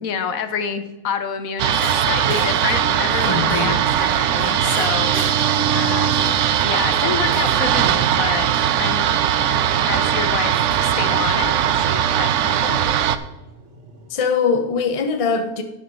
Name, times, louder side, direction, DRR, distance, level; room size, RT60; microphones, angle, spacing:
voice 1, 0.0-6.4 6.6-9.1 9.5-12.8, left 6 dB, 65° left, 10 dB, 1.2 m, -28 dB
sound 1, 1.6-13.2, right 10 dB, 65° right, 0.7 m, -19 dB
sound 2, 1.8-7.7 9.6-9.7 10.7-11.2, equal, 5° right, 2.7 m, -35 dB
voice 2, 3.2-3.8 14.1-15.6, left 5 dB, 35° left, 7 dB, 0.6 m, -22 dB
sound 3, 11.1-14.1, right 3 dB, 45° right, 1.8 m, -43 dB
10.0 x 6.1 x 5.4 m, 0.99 s
omnidirectional pair, 1.6 m